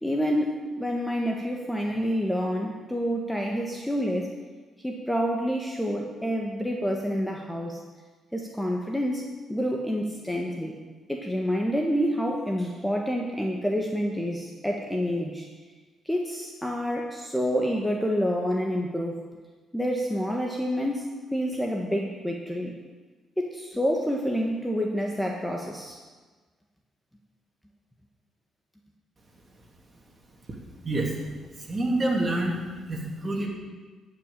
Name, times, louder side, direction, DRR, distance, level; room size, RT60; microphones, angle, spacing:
voice 1, 0.0-4.3 4.8-7.8 8.3-9.2 9.5-10.8 11.1-15.5 16.0-19.2 19.7-22.7 23.4-26.0, equal, 5° left, 1 dB, 1.4 m, -28 dB
voice 2, 30.8-33.5, right 1 dB, 30° right, 0 dB, 2.9 m, -28 dB
12.0 x 6.0 x 8.8 m, 1.3 s
cardioid pair, 90°, 0 cm